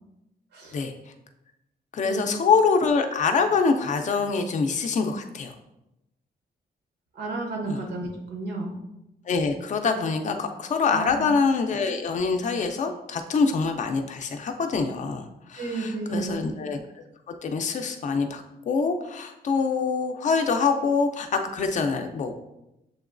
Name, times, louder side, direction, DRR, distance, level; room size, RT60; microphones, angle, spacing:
voice 1, 1.9-5.5 7.7-7.8 9.3-16.8 17.4-22.4, left 5 dB, 45° left, 6 dB, 0.4 m, -25 dB
voice 2, 7.1-8.8 10.9-11.1 15.6-16.5, right 3 dB, 90° right, 1 dB, 1.0 m, -32 dB
7.0 x 3.0 x 2.5 m, 0.89 s
wide cardioid pair, 175°, 17 cm